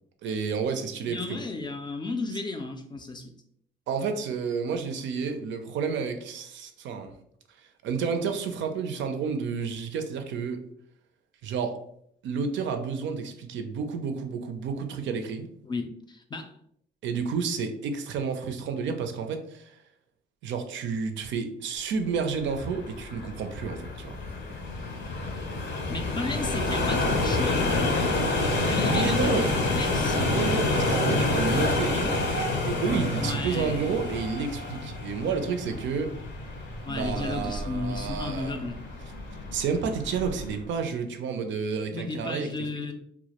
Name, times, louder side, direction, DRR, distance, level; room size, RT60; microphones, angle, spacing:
voice 1, 0.2-1.4 3.9-7.1 7.8-10.6 11.4-11.8 12.2-15.5 17.0-19.8 20.4-24.2 28.4-29.5 30.2-32.3 32.6-36.1 36.9-38.6 39.5-42.5 42.7-42.9, right 5 dB, 70° right, 6 dB, 0.4 m, -30 dB
voice 2, 1.1-3.3 15.6-16.5 25.9-28.0 28.6-30.4 33.2-33.9 36.8-38.8 41.9-42.9, left 3 dB, 25° left, 5 dB, 0.3 m, -34 dB
sound 1, 22.3-40.6, left 2 dB, 65° left, 0.6 m, -28 dB
2.1 x 2.0 x 2.8 m, 0.68 s
cardioid pair, 90°, 20 cm